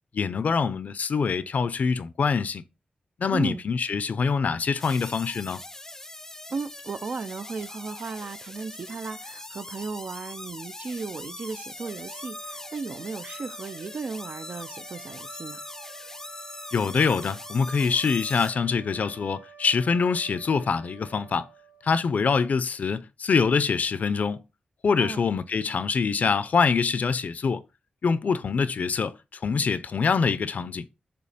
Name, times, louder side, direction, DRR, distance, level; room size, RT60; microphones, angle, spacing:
voice 1, 0.1-2.6 3.2-5.6 16.7-21.5 21.8-24.4 24.8-27.6 28.0-30.9, left 5 dB, 60° left, 0.6 m, -25 dB
voice 2, 3.3-3.6 6.5-15.6 25.0-25.2, right 4 dB, 55° right, 0.5 m, -35 dB
sound 1, 4.8-18.5, left 2 dB, 15° left, 0.5 m, -41 dB
sound 2, 11.7-22.4, right 5 dB, 75° right, 2.6 m, -50 dB
6.9 x 3.0 x 4.9 m
wide cardioid pair, 130°, 3 cm